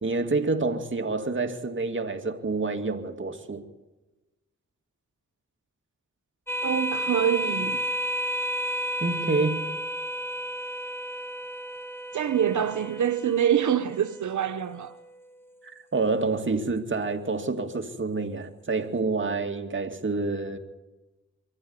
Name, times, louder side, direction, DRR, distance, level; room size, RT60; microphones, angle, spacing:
voice 1, 0.0-3.6 9.0-9.7 15.6-20.6, right 3 dB, 45° right, 2.4 m, -28 dB
sound 1, 6.5-15.4, equal, 10° left, 1.9 m, -32 dB
voice 2, 6.6-7.8 12.1-15.0, right 9 dB, 85° right, 0.9 m, -25 dB
24.5 x 14.5 x 9.8 m
wide cardioid pair, 80°, 29 cm